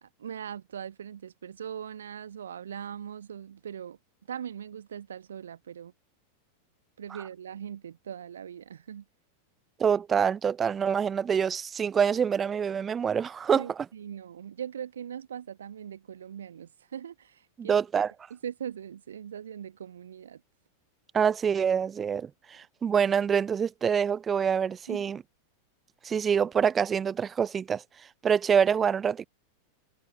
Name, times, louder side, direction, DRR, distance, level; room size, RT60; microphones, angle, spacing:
voice 1, 0.0-4.0 4.3-5.9 7.0-9.0 13.6-17.8 18.3-20.4 24.9-25.0, right 8 dB, 65° right, 1.1 m, -40 dB
voice 2, 9.8-13.7 17.6-18.1 21.1-25.2 26.0-27.8 28.2-29.3, right 7 dB, 20° right, 0.5 m, -26 dB
figure-of-eight pair, 90°, 0 cm